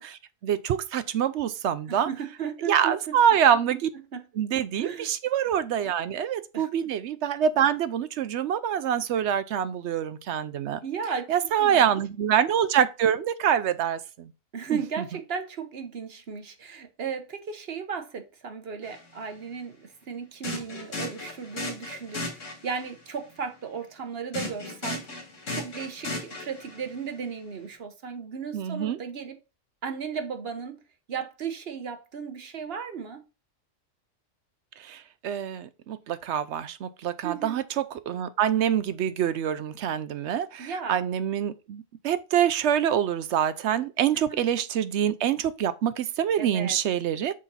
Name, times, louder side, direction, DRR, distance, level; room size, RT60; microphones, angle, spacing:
voice 1, 0.0-2.1 2.7-3.9 4.4-10.8 11.3-14.3 28.5-29.0 34.8-47.3, right 9 dB, 65° right, 0.8 m, -25 dB
voice 2, 1.9-2.9 4.1-4.2 4.8-5.1 6.5-6.7 10.8-11.9 14.5-25.1 25.5-29.4 29.8-30.8 31.1-33.2 37.2-37.6 40.6-41.0 44.1-44.4 46.4-46.8, right 6 dB, 50° right, 1.1 m, -35 dB
sound 1, 18.8-19.0 20.4-22.9 24.3-27.0, left 2 dB, 70° left, 2.2 m, -36 dB
6.3 x 4.3 x 4.0 m
omnidirectional pair, 1.3 m